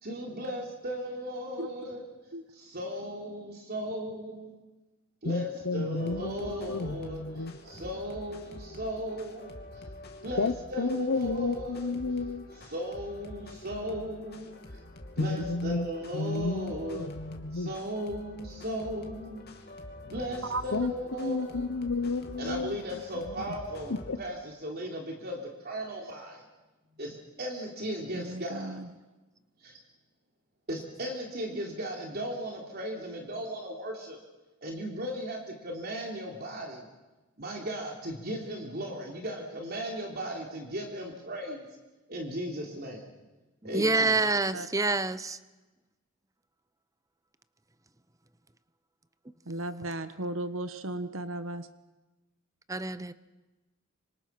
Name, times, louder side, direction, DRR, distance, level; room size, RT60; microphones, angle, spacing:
voice 1, 0.0-2.0 2.5-4.5 5.2-9.8 10.2-12.0 12.6-14.5 15.2-17.1 17.5-19.4 20.0-21.6 22.4-26.4 27.0-28.8 29.6-29.8 30.7-34.2 34.6-36.8 37.4-41.7 42.1-43.0 43.6-44.2, equal, 50° right, 0 dB, 3.5 m, -37 dB
voice 2, 5.2-7.6 10.4-12.5 15.2-17.7 20.7-22.8 23.9-24.2, left 3 dB, 85° left, 12 dB, 0.8 m, -32 dB
sound 1, 6.0-24.2, left 1 dB, 55° left, 2.8 m, -47 dB
voice 3, 28.1-28.9 44.5-44.7 49.5-51.7, right 2 dB, 80° right, 11 dB, 1.3 m, -35 dB
voice 4, 43.6-45.4 52.7-53.1, right 3 dB, 15° right, 14 dB, 0.8 m, -27 dB
26.0 x 26.0 x 6.0 m, 1.1 s
head